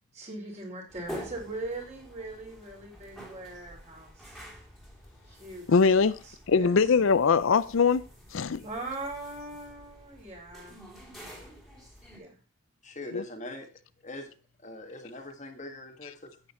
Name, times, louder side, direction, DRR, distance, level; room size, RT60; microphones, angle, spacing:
voice 1, 0.1-4.4 5.3-5.8 6.2-6.8 8.6-11.0 12.1-12.4, right 2 dB, 30° right, 4.7 m, -40 dB
sound 1, 0.9-12.2, equal, ahead, 2.9 m, -48 dB
voice 2, 5.7-6.2 6.5-8.1 8.3-8.6 13.1-13.2, left 5 dB, 65° left, 0.5 m, -22 dB
voice 3, 12.8-13.7 14.0-14.3 14.6-16.4, left 2 dB, 35° left, 1.7 m, -42 dB
9.8 x 9.2 x 4.3 m
head